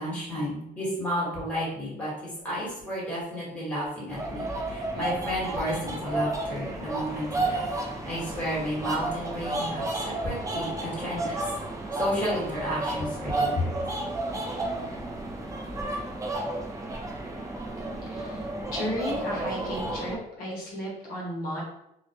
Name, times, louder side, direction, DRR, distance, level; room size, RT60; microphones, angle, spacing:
voice 1, 0.0-7.7 8.1-11.4 12.0-13.8, equal, 10° left, -6 dB, 1.2 m, -32 dB
sound 1, 4.1-20.2, right 2 dB, 20° right, 0.4 m, -32 dB
voice 2, 18.0-21.6, equal, 60° left, -4 dB, 0.8 m, -34 dB
2.2 x 2.1 x 2.7 m, 0.84 s
cardioid pair, 110°, 17 cm